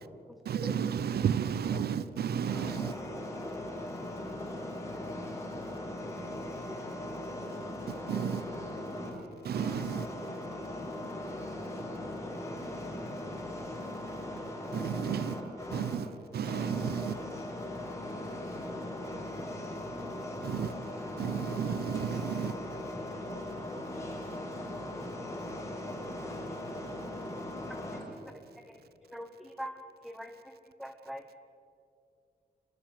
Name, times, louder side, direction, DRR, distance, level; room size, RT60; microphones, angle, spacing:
voice 1, 0.5-2.9 8.1-8.4 9.5-10.0 14.7-15.3 15.7-16.0 16.3-17.1 20.4-20.7 21.2-22.5, right 8 dB, 75° right, 0.7 m, -32 dB
voice 2, 2.5-16.0 16.3-28.0 29.0-29.2, left 1 dB, 20° left, 6.5 m, -39 dB
voice 3, 29.1-30.5 30.8-31.3, equal, ahead, 1.1 m, -43 dB
25.5 x 20.0 x 7.7 m
wide cardioid pair, 150°, 16 cm